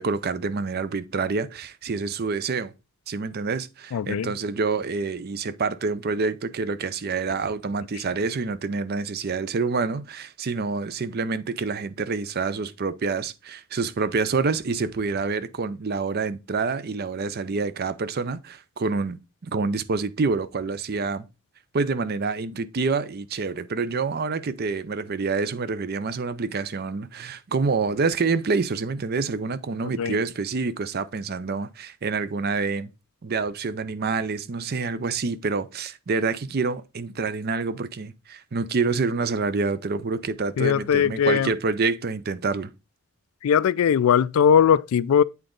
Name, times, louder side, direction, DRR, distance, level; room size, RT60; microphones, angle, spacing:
voice 1, 0.0-2.7 3.1-21.3 21.7-32.9 33.2-42.7, right 4 dB, 45° right, 0.5 m, -27 dB
voice 2, 3.9-4.3 29.8-30.2 40.6-41.5 43.4-45.2, left 8 dB, 70° left, 0.3 m, -20 dB
8.2 x 3.8 x 3.8 m
head